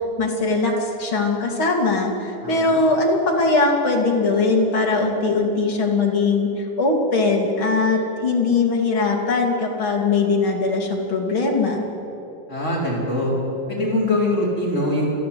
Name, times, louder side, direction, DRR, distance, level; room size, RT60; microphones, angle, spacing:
voice 1, 0.2-11.8, left 3 dB, 40° left, 0 dB, 2.9 m, -20 dB
voice 2, 2.4-2.8 12.5-13.3 13.7-15.1, left 1 dB, 20° left, -5 dB, 4.9 m, -23 dB
29.0 x 11.0 x 8.5 m, 3.0 s
omnidirectional pair, 3.9 m